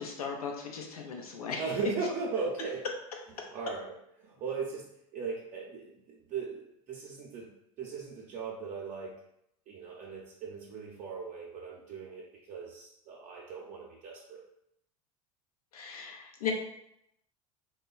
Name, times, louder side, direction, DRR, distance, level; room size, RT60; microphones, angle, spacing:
voice 1, 0.0-1.7 15.7-16.5, left 6 dB, 85° left, 2 dB, 0.5 m, -37 dB
voice 2, 1.6-2.9 3.5-9.2 9.7-14.4, right 5 dB, 45° right, -3 dB, 0.5 m, -38 dB
2.9 x 2.2 x 2.3 m, 0.78 s
hypercardioid pair, 80°, 19 cm